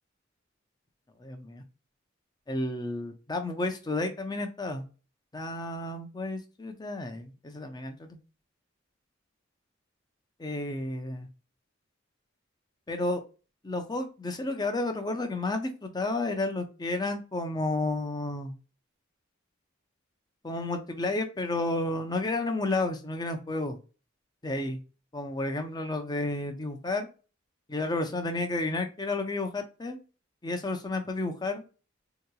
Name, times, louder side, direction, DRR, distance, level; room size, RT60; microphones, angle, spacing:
voice 1, 1.2-1.6 2.5-4.9 5.3-8.2 10.4-11.3 12.9-13.2 13.6-18.5 20.4-23.8 24.4-24.8 25.1-27.1 27.7-30.0 30.4-31.6, left 2 dB, 20° left, 6 dB, 0.6 m, -31 dB
3.7 x 2.9 x 2.3 m, 0.34 s
head